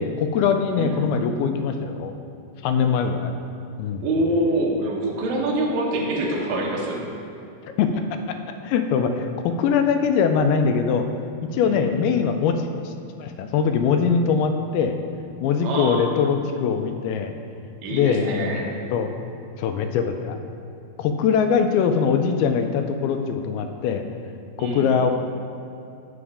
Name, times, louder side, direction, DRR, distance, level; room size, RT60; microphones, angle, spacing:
voice 1, 0.0-2.2 2.6-3.4 3.8-4.0 7.6-8.0 8.6-11.1 11.4-12.9 13.2-15.0 15.4-17.3 17.9-19.1 19.6-20.4 21.0-24.0 24.6-25.1, left 6 dB, 85° left, 7 dB, 2.5 m, -22 dB
voice 2, 4.0-7.0 11.6-11.9 15.6-16.2 17.8-18.7 24.6-24.9, right 1 dB, 65° right, -2 dB, 2.0 m, -25 dB
7.1 x 6.2 x 4.9 m, 2.7 s
omnidirectional pair, 4.4 m